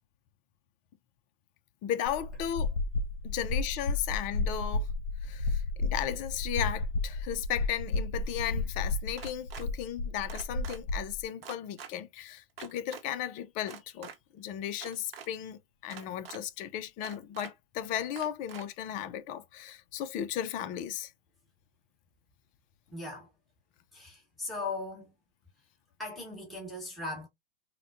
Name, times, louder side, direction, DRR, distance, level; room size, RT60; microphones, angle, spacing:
voice 1, 1.8-2.7 3.2-4.9 5.2-21.1, left 10 dB, 30° left, 0.4 m, -35 dB
sound 1, 2.1-11.2, left 3 dB, 55° left, 1.1 m, -32 dB
sound 2, 9.2-9.7 10.3-10.8 11.4-11.9 12.6-13.0 13.6-14.2 14.7-15.3 15.9-16.4 17.0-17.5 18.2-18.6, right 7 dB, 85° right, 1.0 m, -45 dB
voice 2, 22.9-23.3 23.9-25.1 26.0-27.3, left 3 dB, ahead, 1.3 m, -38 dB
4.1 x 2.1 x 2.6 m
hypercardioid pair, 125°, 29 cm